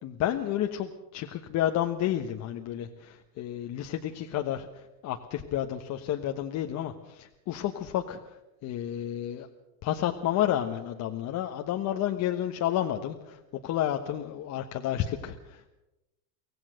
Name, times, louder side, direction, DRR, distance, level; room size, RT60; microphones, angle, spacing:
voice 1, 0.0-9.5 9.8-15.7, left 11 dB, 35° left, 4 dB, 1.3 m, -31 dB
24.0 x 17.0 x 6.5 m, 0.97 s
supercardioid pair, 130°, 49 cm